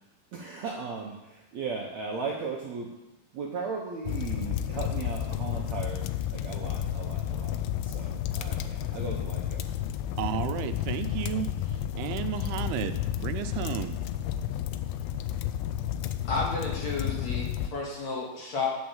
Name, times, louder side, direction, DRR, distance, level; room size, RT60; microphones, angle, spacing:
voice 1, 0.3-2.9 3.3-9.7, right 5 dB, 70° right, -1 dB, 1.7 m, -37 dB
sound 1, 4.1-17.7, left 11 dB, 85° left, 2.4 m, -31 dB
voice 2, 10.2-14.0, right 11 dB, 90° right, 9 dB, 2.6 m, -33 dB
voice 3, 16.3-18.7, left 3 dB, 50° left, -3 dB, 2.8 m, -32 dB
9.5 x 6.4 x 7.2 m, 0.98 s
omnidirectional pair, 4.5 m